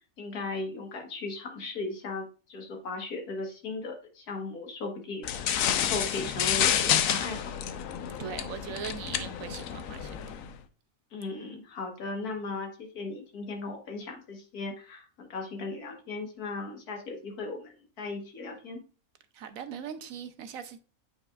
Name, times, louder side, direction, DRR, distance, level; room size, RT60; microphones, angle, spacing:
voice 1, 0.2-7.5 11.1-18.8, left 3 dB, 90° left, 1.8 m, -37 dB
sound 1, 5.2-10.5, left 9 dB, 70° left, 1.0 m, -29 dB
voice 2, 8.2-10.2 19.3-20.8, right 8 dB, 70° right, 1.0 m, -40 dB
8.6 x 4.8 x 2.4 m
omnidirectional pair, 1.6 m